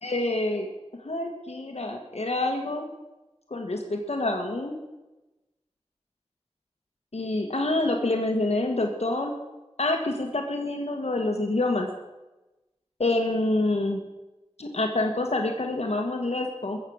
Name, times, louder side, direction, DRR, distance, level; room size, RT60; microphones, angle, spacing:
voice 1, 0.0-0.7 1.0-2.9 3.5-4.8 7.1-9.3 9.8-11.9 13.0-14.0 14.6-16.8, left 2 dB, 85° left, 3 dB, 1.3 m, -27 dB
21.0 x 7.5 x 6.3 m, 1.1 s
wide cardioid pair, 55°, 11 cm